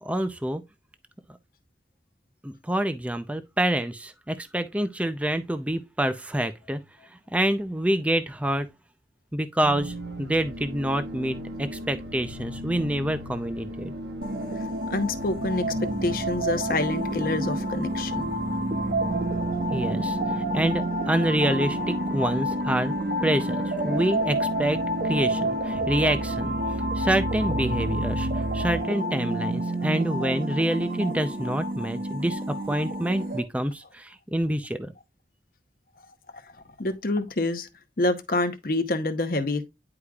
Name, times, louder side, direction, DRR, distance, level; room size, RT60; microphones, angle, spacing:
voice 1, 0.0-0.6 2.4-6.8 7.3-8.7 9.3-13.9 19.7-22.9 23.2-24.8 25.1-26.6 27.0-28.3 28.5-34.9, right 1 dB, 10° right, 0.5 m, -27 dB
sound 1, 9.6-28.8, right 2 dB, 85° right, 1.1 m, -35 dB
sound 2, 14.2-33.4, right 1 dB, 55° right, 1.5 m, -29 dB
voice 2, 14.9-15.7 16.0-18.3 36.8-37.7 38.0-39.6, left 2 dB, 50° left, 0.9 m, -27 dB
10.0 x 4.8 x 2.3 m
head